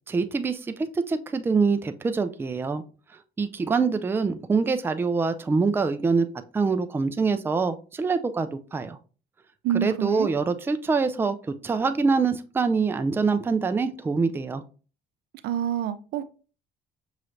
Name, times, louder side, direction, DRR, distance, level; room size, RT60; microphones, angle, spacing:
voice 1, 0.1-0.6 1.1-2.8 3.4-6.3 6.5-9.0 9.7-11.4 11.6-14.6, right 4 dB, 15° right, 0.3 m, -24 dB
voice 2, 9.6-10.3 15.4-16.3, right 9 dB, 75° right, 0.5 m, -27 dB
5.7 x 3.2 x 2.6 m
cardioid pair, 110°, 17 cm